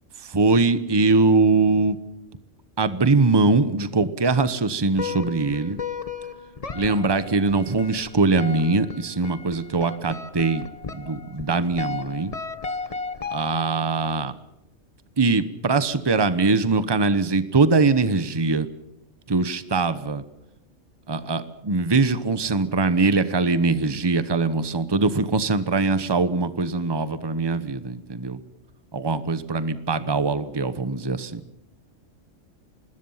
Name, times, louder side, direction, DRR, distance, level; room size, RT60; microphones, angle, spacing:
voice 1, 0.2-2.0 2.8-5.8 6.7-10.7 10.9-12.3 13.3-14.3 15.2-18.7 19.3-20.2 21.1-28.4 28.9-31.4, right 3 dB, 20° right, 13 dB, 1.0 m, -22 dB
sound 1, 4.9-13.9, left 4 dB, 30° left, 1.0 m, -35 dB
25.5 x 21.0 x 5.8 m, 0.85 s
omnidirectional pair, 1.3 m